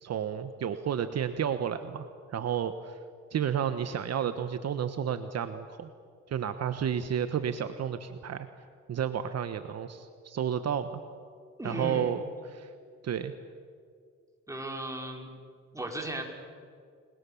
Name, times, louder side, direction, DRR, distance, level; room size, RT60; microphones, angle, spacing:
voice 1, 0.0-3.0 3.3-5.9 6.3-8.5 8.9-11.0 11.6-12.7 13.0-13.3, right 8 dB, 55° right, 9 dB, 1.2 m, -31 dB
voice 2, 11.6-12.1 14.5-15.3 15.7-16.2, right 1 dB, 10° right, 1 dB, 5.2 m, -36 dB
30.0 x 21.5 x 7.2 m, 2.1 s
cardioid pair, 90°, 30 cm